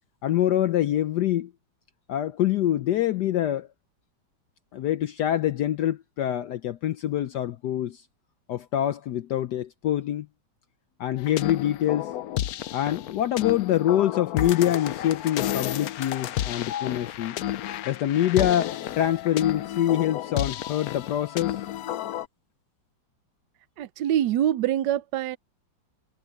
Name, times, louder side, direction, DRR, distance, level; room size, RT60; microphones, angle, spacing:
voice 1, 0.2-1.5 2.1-3.7 4.7-8.0 8.5-10.3 11.0-12.1 12.7-17.4 17.9-21.6, left 12 dB, 70° left, 1.0 m, -25 dB
sound 1, 11.2-22.3, left 12 dB, 90° left, 0.8 m, -31 dB
voice 2, 23.8-25.4, right 11 dB, 70° right, 1.2 m, -25 dB
omnidirectional pair, 2.3 m